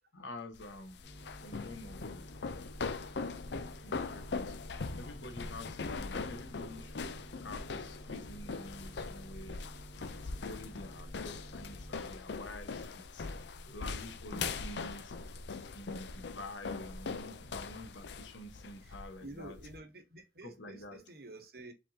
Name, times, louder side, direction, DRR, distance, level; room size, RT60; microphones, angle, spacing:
voice 1, 0.1-1.0 1.3-2.3 3.8-4.6 4.9-7.1 7.4-9.6 10.0-13.3 13.6-15.1 15.7-19.6 20.4-21.0, left 1 dB, 85° left, 1.2 m, -48 dB
sound 1, 0.5-19.8, left 4 dB, 70° left, 0.5 m, -41 dB
sound 2, 1.0-11.9, right 1 dB, 45° left, 2.0 m, -53 dB
voice 2, 19.2-21.7, right 2 dB, 55° right, 1.1 m, -50 dB
5.1 x 3.6 x 2.7 m
head